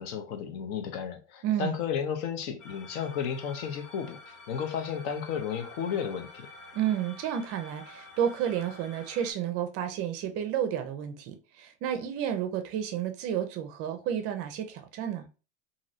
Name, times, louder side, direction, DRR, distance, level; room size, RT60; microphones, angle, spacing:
voice 1, 0.0-6.5, left 7 dB, 55° left, 0.7 m, -33 dB
voice 2, 1.4-1.7 6.7-15.3, right 9 dB, 40° right, 0.5 m, -31 dB
sound 1, 2.6-9.3, left 3 dB, 80° left, 0.9 m, -49 dB
3.0 x 2.7 x 2.5 m
supercardioid pair, 120°, 37 cm